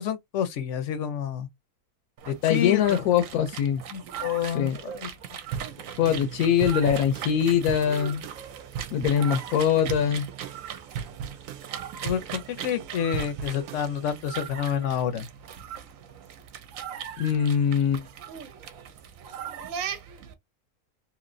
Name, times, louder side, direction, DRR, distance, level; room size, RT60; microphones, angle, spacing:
voice 1, 0.0-1.5 2.3-3.0 3.9-5.1 12.0-15.3, left 9 dB, 65° left, 0.9 m, -29 dB
sound 1, 2.2-20.3, right 8 dB, 70° right, 1.0 m, -39 dB
voice 2, 2.4-3.8 4.4-4.8 6.0-8.3 8.9-10.3 17.2-18.0, left 8 dB, 85° left, 1.1 m, -23 dB
sound 2, 5.5-14.2, right 7 dB, 90° right, 1.1 m, -39 dB
3.0 x 2.8 x 2.5 m
omnidirectional pair, 1.6 m